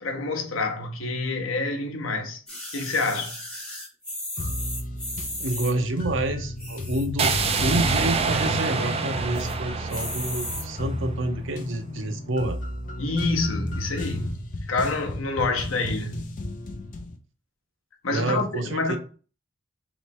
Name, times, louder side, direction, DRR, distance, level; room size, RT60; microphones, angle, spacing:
voice 1, 0.0-2.4 2.7-3.4 13.0-16.4 18.0-19.0, left 3 dB, 80° left, 0.9 m, -27 dB
sound 1, 2.5-5.7 6.5-7.2 7.7-7.8 7.9-8.0 8.4-8.8 9.3-9.6 9.9-10.6 11.4-11.5, left 1 dB, 5° left, 1.4 m, -35 dB
sound 2, 4.4-17.2, left 1 dB, 40° left, 0.6 m, -33 dB
voice 2, 5.4-7.3 7.6-12.6 18.1-19.0, right 1 dB, 65° right, 0.7 m, -28 dB
sound 3, 7.2-11.2, right 4 dB, 30° right, 0.4 m, -26 dB
3.1 x 3.1 x 4.3 m
head